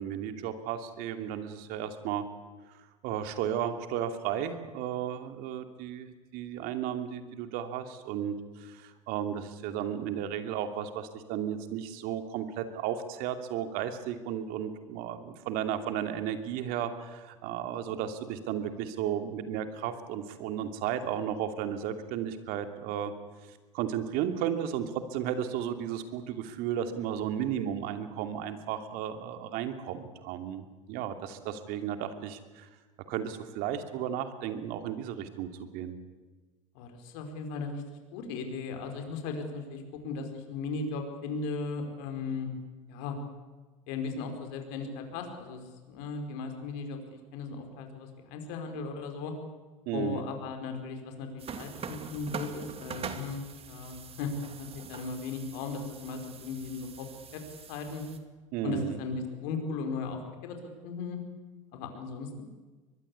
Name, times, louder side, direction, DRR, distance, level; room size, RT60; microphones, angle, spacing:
voice 1, 0.0-2.2 2.7-23.1 23.5-32.7 33.1-36.0 49.9-50.3 58.5-59.0, right 9 dB, 65° right, 8 dB, 2.8 m, -34 dB
voice 2, 36.7-37.8 38.1-42.5 42.9-43.2 43.9-45.6 45.9-49.3 49.9-54.3 54.6-57.1 57.3-57.4 57.7-58.0 58.6-61.2 61.7-62.4, left 4 dB, 70° left, 5 dB, 4.9 m, -37 dB
sound 1, 51.4-58.2, right 6 dB, 35° right, 2.6 m, -43 dB
24.0 x 21.0 x 8.5 m, 1.3 s
hypercardioid pair, 80°, 17 cm